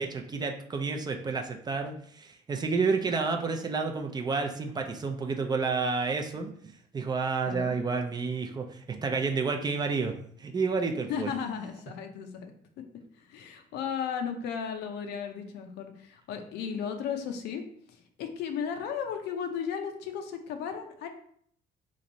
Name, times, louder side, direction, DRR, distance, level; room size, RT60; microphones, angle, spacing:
voice 1, 0.0-6.5 6.9-10.1 10.4-11.3, right 4 dB, 25° right, 4 dB, 0.4 m, -30 dB
voice 2, 11.1-12.5 13.2-17.6 17.9-21.1, left 7 dB, 80° left, 5 dB, 0.6 m, -35 dB
3.1 x 2.5 x 3.9 m, 0.62 s
cardioid pair, 110°, 17 cm